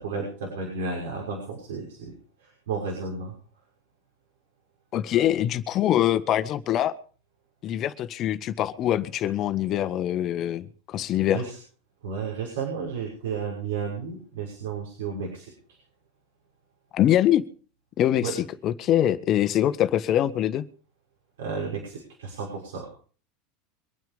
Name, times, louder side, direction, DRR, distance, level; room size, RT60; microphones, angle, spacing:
voice 1, 0.0-2.1 2.4-3.3 11.2-11.6 12.0-15.8 18.2-18.3 21.4-22.9, right 5 dB, 80° right, -2 dB, 6.2 m, -33 dB
voice 2, 4.9-7.0 7.6-11.4 16.9-17.4 18.0-20.7, left 12 dB, 45° left, 12 dB, 1.5 m, -24 dB
24.5 x 9.5 x 5.2 m, 0.43 s
hypercardioid pair, 90°, 0 cm